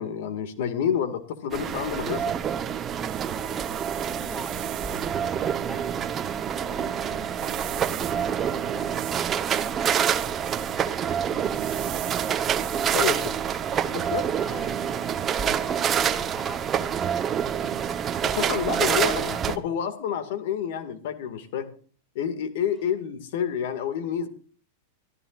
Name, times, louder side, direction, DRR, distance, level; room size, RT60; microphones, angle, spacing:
voice 1, 0.0-2.3 12.9-13.1 13.9-14.2 18.2-21.7 22.2-24.3, left 8 dB, 65° left, 10 dB, 2.0 m, -28 dB
sound 1, 1.5-19.6, right 8 dB, 25° right, 0.9 m, -27 dB
sound 2, 2.6-14.7, right 19 dB, 45° right, 0.9 m, -43 dB
voice 2, 3.0-5.9 6.2-8.9 9.3-17.3, right 1 dB, 5° left, 8 dB, 2.0 m, -43 dB
24.0 x 14.0 x 2.5 m, 0.41 s
supercardioid pair, 145°, 0 cm